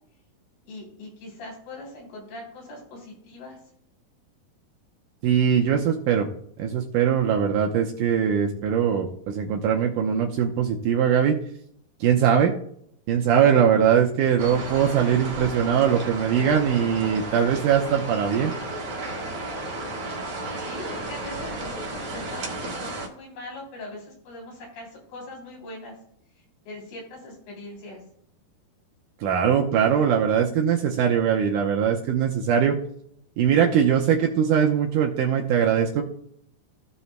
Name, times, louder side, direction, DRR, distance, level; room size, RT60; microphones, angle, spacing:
voice 1, 0.7-3.6 20.6-25.9 26.7-28.0, left 2 dB, 85° left, -3 dB, 5.3 m, -41 dB
voice 2, 5.2-6.3 6.6-11.4 12.0-12.5 13.1-18.5 29.2-32.8 33.4-36.0, right 8 dB, 75° right, 2 dB, 2.0 m, -21 dB
sound 1, 14.4-23.1, right 2 dB, 50° right, 2.1 m, -33 dB
16.5 x 5.5 x 2.2 m, 0.65 s
omnidirectional pair, 4.4 m